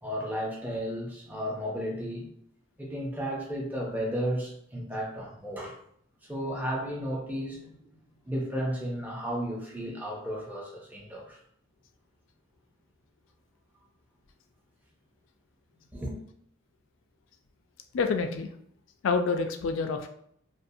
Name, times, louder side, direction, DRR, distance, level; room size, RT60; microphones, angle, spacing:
voice 1, 0.0-2.3 2.8-5.8 6.2-7.9 8.3-11.4 15.9-16.2, equal, 10° right, -2 dB, 0.4 m, -33 dB
voice 2, 17.9-18.5 19.0-20.1, left 4 dB, 65° left, 7 dB, 0.3 m, -27 dB
2.5 x 2.3 x 2.6 m, 0.68 s
head